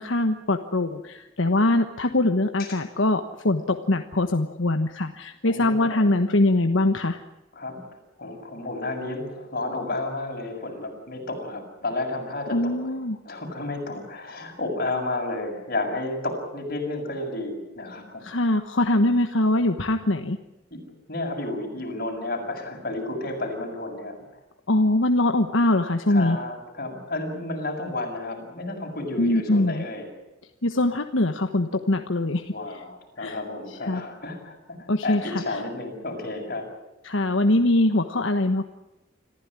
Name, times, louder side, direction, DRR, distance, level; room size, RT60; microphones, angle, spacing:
voice 1, 0.0-7.2 12.5-13.2 18.2-20.4 24.7-26.4 29.2-29.8 30.6-32.5 33.2-33.4 33.8-34.0 34.9-35.6 37.0-38.7, left 1 dB, 80° left, 6 dB, 1.3 m, -22 dB
voice 2, 5.5-6.1 7.5-12.8 13.2-18.3 20.7-20.8 21.1-24.2 26.1-30.1 32.5-34.6 35.0-36.7, left 2 dB, 50° left, 2 dB, 7.0 m, -32 dB
26.5 x 15.5 x 9.8 m, 1.0 s
head